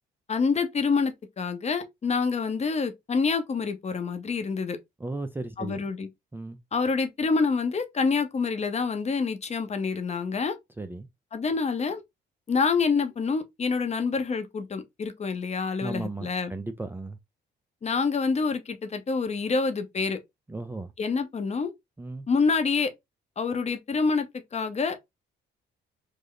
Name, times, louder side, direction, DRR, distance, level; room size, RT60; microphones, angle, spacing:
voice 1, 0.3-4.8 5.6-6.1 6.7-10.6 11.3-12.0 12.5-16.5 17.8-20.2 21.0-21.7 22.3-22.9 23.4-25.0, left 4 dB, 35° left, 0.6 m, -27 dB
voice 2, 5.0-5.8 6.3-6.6 10.8-11.1 15.8-17.2 20.5-20.9 22.0-22.3, right 2 dB, 10° right, 0.3 m, -35 dB
3.2 x 2.0 x 3.7 m
cardioid pair, 90°, 20 cm